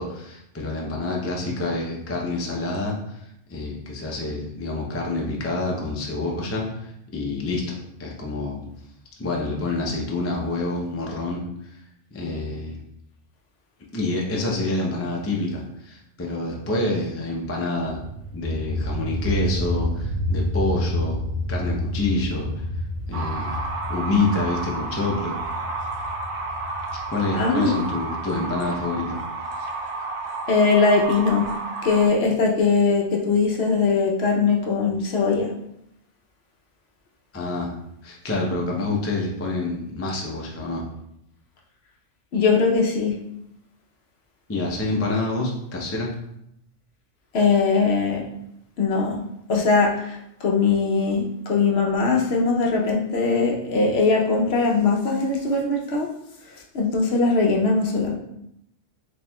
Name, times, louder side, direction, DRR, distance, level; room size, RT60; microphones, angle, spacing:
voice 1, 0.0-8.6 9.2-11.5 12.1-12.8 13.9-18.0 18.3-21.2 21.5-22.7 23.1-23.6 23.9-25.3 27.1-29.2 37.3-37.7 38.0-40.8 44.5-46.1, left 2 dB, 20° left, -2 dB, 0.3 m, -27 dB
sound 1, 17.8-29.4, left 1 dB, 55° right, 1.3 m, -29 dB
sound 2, 23.1-32.1, right 3 dB, 80° right, 1.0 m, -31 dB
voice 2, 27.3-27.7 30.5-31.4 31.8-35.5 42.3-43.1 47.3-48.2 48.8-49.2 49.5-56.1 56.7-58.2, left 4 dB, 65° left, 0 dB, 0.8 m, -20 dB
4.4 x 3.6 x 2.2 m, 0.78 s
omnidirectional pair, 1.3 m